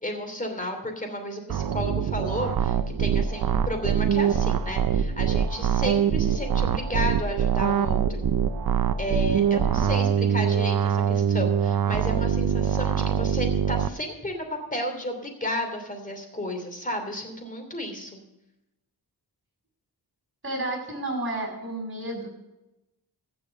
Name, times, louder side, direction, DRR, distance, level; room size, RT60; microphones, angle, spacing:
voice 1, 0.0-8.3 9.0-18.2, left 1 dB, 20° left, 5 dB, 2.9 m, -32 dB
sound 1, 1.5-13.9, right 8 dB, 60° right, 0.7 m, -24 dB
voice 2, 20.4-22.3, right 1 dB, 30° right, 0 dB, 6.1 m, -32 dB
15.0 x 6.9 x 6.6 m, 0.94 s
wide cardioid pair, 100°, 40 cm